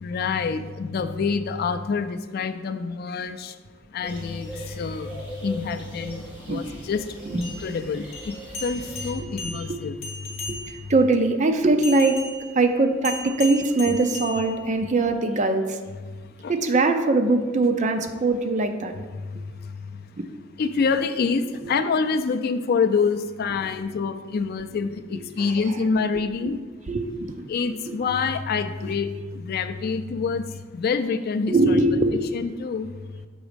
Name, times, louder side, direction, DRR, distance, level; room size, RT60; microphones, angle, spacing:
voice 1, 0.0-3.5 3.9-5.2 5.4-7.0 7.3-8.3 8.6-10.0 13.8-14.0 16.4-16.5 20.6-26.6 27.5-30.4 30.7-31.8 32.3-32.9, left 5 dB, 50° left, 10 dB, 0.3 m, -26 dB
sound 1, 4.0-9.1, equal, 5° right, 2.0 m, -40 dB
sound 2, 7.3-11.0 11.8-15.0, left 3 dB, 35° left, 1.2 m, -37 dB
voice 2, 9.2-9.8 10.5-12.2 12.5-15.8 16.5-18.9 20.2-20.3 21.6-21.7 26.9-27.3 27.9-28.0 31.5-32.2, right 2 dB, 35° right, 6 dB, 0.5 m, -22 dB
6.2 x 4.0 x 5.0 m, 1.3 s
head